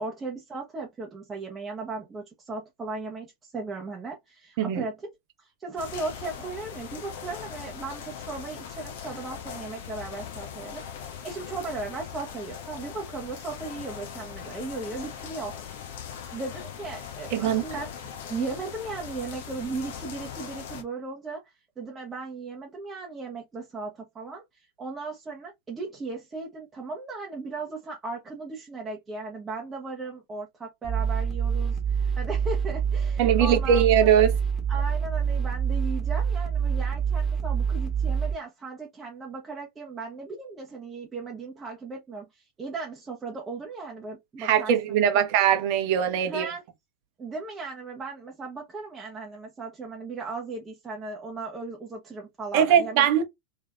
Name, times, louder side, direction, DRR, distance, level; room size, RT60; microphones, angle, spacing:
voice 1, 0.0-5.1 5.4-15.6 16.3-17.9 18.3-34.1 34.7-45.0 46.3-46.6 47.2-53.1, right 3 dB, 20° right, 0.9 m, -37 dB
sound 1, 5.8-20.8, left 8 dB, 55° left, 0.9 m, -40 dB
voice 2, 17.3-17.6 33.2-34.3 44.4-46.5 52.5-53.2, right 9 dB, 45° right, 0.9 m, -21 dB
sound 2, 30.8-38.3, right 7 dB, ahead, 1.4 m, -26 dB
3.4 x 3.2 x 2.4 m
figure-of-eight pair, 90°, 0 cm